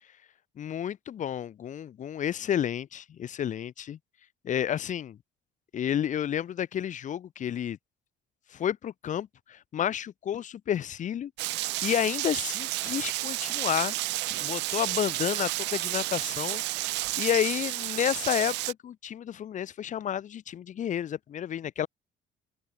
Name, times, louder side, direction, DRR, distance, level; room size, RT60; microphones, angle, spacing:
voice 1, 0.6-4.0 4.4-5.2 5.7-7.8 8.5-11.3 11.8-14.0 14.3-16.6 17.2-21.9, left 9 dB, 45° left, 3.2 m, -30 dB
Rain, 11.4-18.7, right 20 dB, 80° right, 1.1 m, -31 dB
open air
cardioid pair, 135°, 18 cm